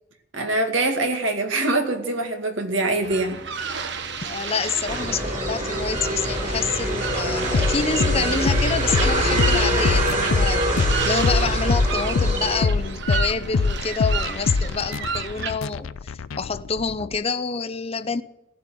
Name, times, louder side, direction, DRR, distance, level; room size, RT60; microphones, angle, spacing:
voice 1, 0.3-3.4, right 2 dB, 75° right, 2.2 m, -24 dB
sound 1, 3.0-15.5, right 6 dB, 60° right, 1.2 m, -32 dB
voice 2, 4.2-18.2, left 5 dB, 30° left, 0.6 m, -27 dB
sound 2, 4.9-12.7, right 1 dB, 40° right, 3.3 m, -24 dB
sound 3, 7.5-17.2, left 4 dB, 90° left, 0.5 m, -24 dB
16.5 x 7.5 x 9.9 m
head